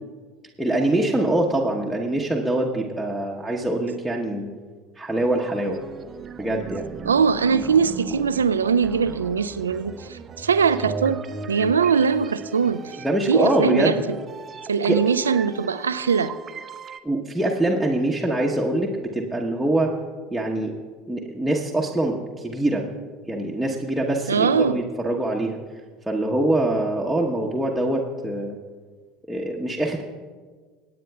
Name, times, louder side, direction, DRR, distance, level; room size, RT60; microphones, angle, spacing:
voice 1, 0.6-4.5 5.0-5.8 6.4-6.9 13.0-14.0 14.9-15.0 17.0-19.9 20.3-20.8 21.1-22.9 23.3-25.6 26.1-28.6 29.3-30.0, right 1 dB, ahead, -4 dB, 1.1 m, -24 dB
sound 1, 5.2-17.0, right 5 dB, 30° right, 0.6 m, -37 dB
voice 2, 7.1-14.0 14.7-16.4 24.3-24.8, right 6 dB, 75° right, 12 dB, 0.4 m, -21 dB
26.0 x 9.2 x 2.3 m, 1.5 s
figure-of-eight pair, 70°, 0 cm